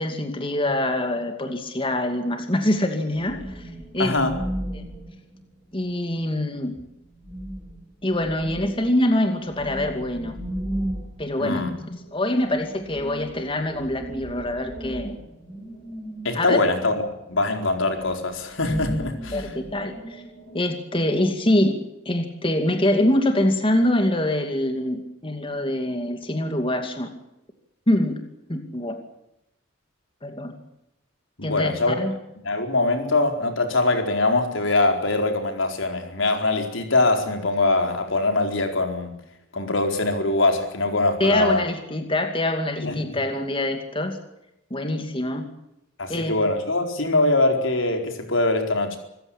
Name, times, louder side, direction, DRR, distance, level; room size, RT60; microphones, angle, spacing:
voice 1, 0.0-3.6 3.9-4.2 4.7-4.8 5.7-6.8 8.0-10.4 11.2-15.2 16.3-16.6 19.3-20.2 20.5-21.7 22.1-27.1 27.9-28.2 28.5-29.0 30.2-30.5 31.4-32.2 41.2-44.2 44.7-45.5 46.1-46.3, left 1 dB, 25° left, 6 dB, 2.5 m, -24 dB
sound 1, 3.0-5.9 6.8-6.9 7.1-17.4 17.9-20.6, right 1 dB, 10° left, 7.5 m, -36 dB
voice 2, 4.0-4.4 11.4-11.7 16.2-17.0 17.3-19.4 31.4-32.0 32.4-39.1 39.5-41.6 42.8-43.2 46.0-49.0, left 2 dB, 75° left, 5 dB, 4.5 m, -23 dB
26.0 x 15.5 x 8.7 m, 0.85 s
head